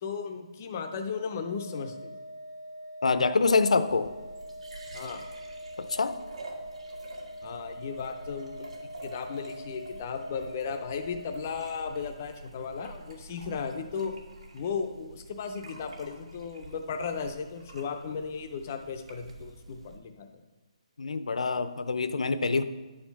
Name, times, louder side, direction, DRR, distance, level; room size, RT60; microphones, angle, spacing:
voice 1, 0.0-2.1 4.9-5.2 7.4-8.7 9.0-14.1 14.5-20.4, left 6 dB, 20° left, 6 dB, 0.4 m, -35 dB
Organ, 1.2-11.9, equal, 35° right, 1.1 m, -43 dB
voice 2, 3.0-4.1 5.9-6.1 21.0-22.6, left 4 dB, 75° left, 11 dB, 0.6 m, -25 dB
sound 1, 3.8-20.0, right 3 dB, 80° right, 1.6 m, -48 dB
9.7 x 4.4 x 5.7 m, 1.2 s
hypercardioid pair, 180°, 3 cm